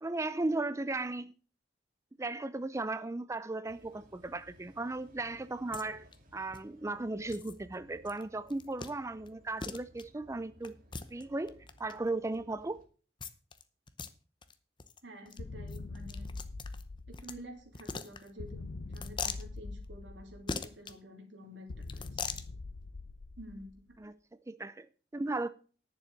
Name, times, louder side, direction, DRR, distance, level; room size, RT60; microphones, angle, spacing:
voice 1, 0.0-1.3 2.2-6.1 6.3-10.8 11.1-12.8 24.0-24.1 24.5-24.9 25.1-25.5, right 2 dB, 15° right, 0.4 m, -36 dB
sound 1, 3.6-12.9, equal, 50° right, 2.2 m, -60 dB
sound 2, 5.7-5.8 6.1-6.2 6.5-6.6 7.3-7.6 8.0-8.2 8.5-8.9 9.3-9.4 9.6-10.0 10.6-11.9 13.2-13.6 13.9-14.1 14.4-14.5 14.8-15.0 15.3-15.4 15.7-17.4 17.7-18.5 18.9-19.4 20.5-20.9 21.8-22.5, left 5 dB, 25° left, 0.8 m, -40 dB
voice 2, 15.0-16.3 17.1-22.3 23.4-24.0, equal, 90° right, 3.2 m, -50 dB
sound 3, 15.4-17.7 18.4-20.7 21.7-24.0, left 3 dB, 85° left, 0.6 m, -44 dB
10.5 x 7.0 x 6.5 m
head